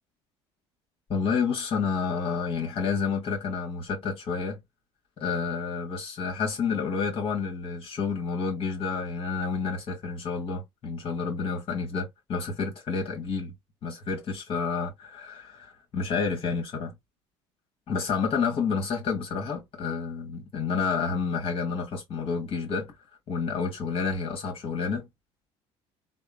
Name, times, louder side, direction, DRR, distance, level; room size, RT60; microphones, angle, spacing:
voice 1, 1.1-4.6 5.2-13.5 13.8-16.9 17.9-22.9 23.3-25.1, left 5 dB, 50° left, 1.7 m, -29 dB
3.5 x 2.2 x 2.2 m
supercardioid pair, 90°, 12 cm